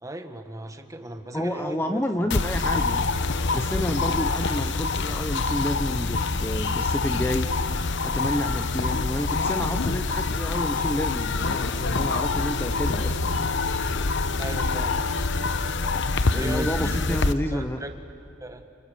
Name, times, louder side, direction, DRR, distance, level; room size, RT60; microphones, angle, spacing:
voice 1, 0.0-2.0 8.8-9.1 14.4-15.0 16.3-18.0 18.4-18.7, right 1 dB, 15° right, 7 dB, 1.6 m, -36 dB
voice 2, 1.3-3.1 3.5-7.5 8.0-13.5 16.3-17.8, left 1 dB, 10° left, 7 dB, 0.9 m, -30 dB
sound 1, 2.3-17.3, left 3 dB, 65° left, 0.9 m, -26 dB
sound 2, 11.9-17.4, left 2 dB, 85° left, 2.2 m, -42 dB
29.5 x 29.0 x 7.0 m, 2.6 s
head